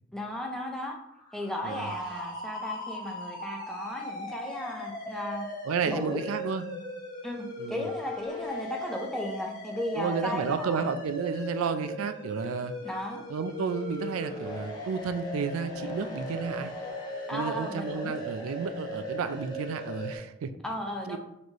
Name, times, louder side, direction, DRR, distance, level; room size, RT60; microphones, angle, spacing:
voice 1, 0.1-1.0 1.3-5.5 5.8-6.2 7.2-10.8 12.8-13.3 17.3-18.1 20.6-21.2, left 1 dB, 5° left, 0 dB, 0.4 m, -35 dB
sound 1, 1.1-20.2, left 1 dB, 20° left, 0.8 m, -38 dB
voice 2, 5.7-6.6 7.6-7.9 9.9-12.7 13.3-16.7 17.3-20.5 21.1-21.2, right 5 dB, 85° right, 10 dB, 0.3 m, -32 dB
4.2 x 3.1 x 2.9 m, 0.84 s
head